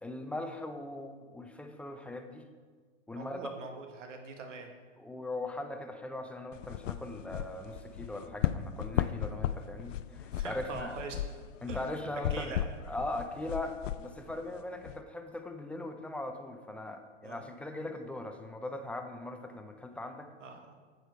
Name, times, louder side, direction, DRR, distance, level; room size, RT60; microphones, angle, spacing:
voice 1, 0.0-2.5 3.1-3.7 5.0-11.0 11.6-12.6 12.9-20.3, left 2 dB, 5° left, 5 dB, 0.4 m, -40 dB
voice 2, 3.1-4.7 9.0-9.2 10.3-11.2 11.7-11.8 12.3-12.6 17.2-17.4 20.4-20.6, right 4 dB, 80° right, 5 dB, 1.4 m, -43 dB
sound 1, 6.5-15.0, left 11 dB, 85° left, 0.5 m, -36 dB
8.5 x 7.9 x 4.5 m, 1.5 s
hypercardioid pair, 120°, 37 cm